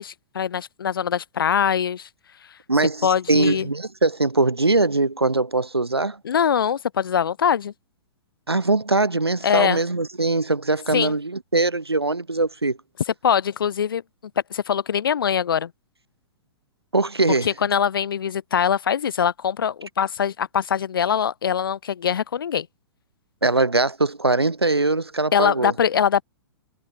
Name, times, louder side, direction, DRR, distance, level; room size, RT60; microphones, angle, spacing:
voice 1, 0.0-2.1 3.0-3.7 6.2-7.7 9.4-9.8 10.9-11.1 13.2-14.0 14.5-15.7 17.4-22.7 25.3-26.2, left 8 dB, 60° left, 2.2 m, -22 dB
voice 2, 2.7-6.2 8.5-12.8 16.9-17.5 23.4-25.7, right 2 dB, 80° right, 2.7 m, -21 dB
figure-of-eight pair, 110°, 13 cm